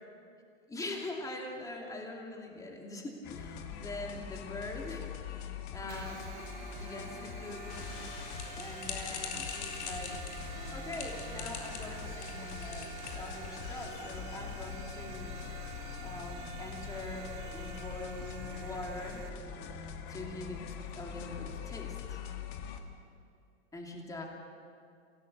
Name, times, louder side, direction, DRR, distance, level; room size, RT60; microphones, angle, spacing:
voice 1, 0.7-3.5 3.8-5.4 5.7-6.2 6.7-7.8 8.6-10.3 10.7-15.4 16.0-19.2 20.1-20.6 21.0-22.2 23.7-24.3, left 2 dB, 10° left, 0 dB, 2.9 m, -43 dB
sound 1, 3.2-22.8, left 7 dB, 40° left, 2.0 m, -43 dB
sound 2, 5.9-19.3, right 9 dB, 75° right, 3.8 m, -48 dB
sound 3, 7.7-13.8, left 6 dB, 55° left, 4.0 m, -43 dB
27.0 x 17.5 x 6.8 m, 2.4 s
hypercardioid pair, 145°, 40 cm